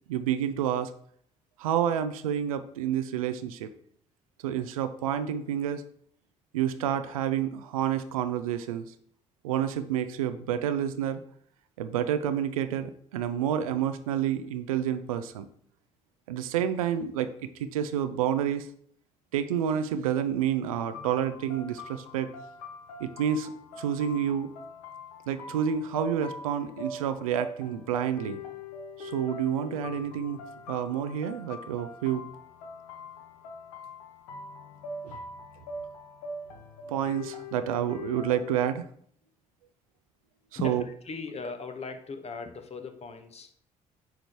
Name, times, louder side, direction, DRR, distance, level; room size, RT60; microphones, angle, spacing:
voice 1, 0.1-0.9 1.6-3.7 4.4-5.8 6.5-8.9 9.4-11.2 11.8-15.5 16.3-18.7 19.3-22.3 23.0-23.5 23.8-24.5 25.3-28.4 29.0-30.4 30.7-32.2 35.0-35.2 36.9-38.8 40.5-40.8, right 9 dB, 80° right, 10 dB, 0.5 m, -29 dB
sound 1, 20.9-38.7, left 2 dB, 75° left, 0.9 m, -42 dB
voice 2, 40.6-43.5, left 4 dB, 35° left, 7 dB, 1.0 m, -38 dB
9.3 x 5.0 x 3.0 m, 0.63 s
figure-of-eight pair, 45°, 18 cm